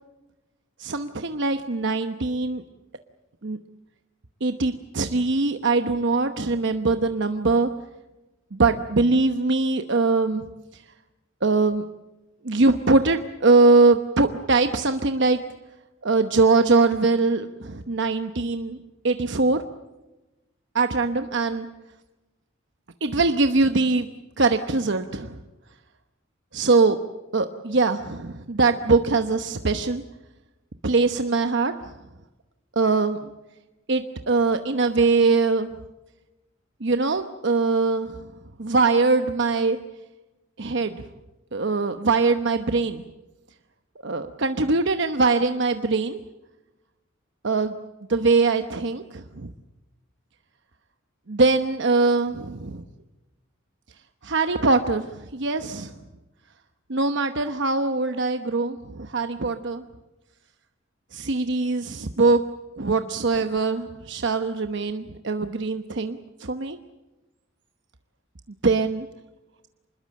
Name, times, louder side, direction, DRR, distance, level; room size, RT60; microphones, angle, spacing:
voice 1, 0.8-2.6 3.4-3.6 4.4-7.7 8.5-10.5 11.4-11.8 12.4-15.4 16.0-18.8 19.0-19.6 20.7-21.7 23.0-24.1 24.4-25.4 26.5-27.0 27.3-30.0 30.8-31.9 32.8-33.2 33.9-35.7 36.8-38.2 38.6-39.8 40.6-41.0 41.5-43.0 44.0-46.2 47.4-47.7 48.1-49.5 51.3-52.8 54.2-55.9 56.9-59.8 61.1-62.4 62.8-66.8 68.6-69.1, right 3 dB, 60° right, 8 dB, 1.0 m, -22 dB
26.5 x 21.0 x 7.7 m, 1.0 s
head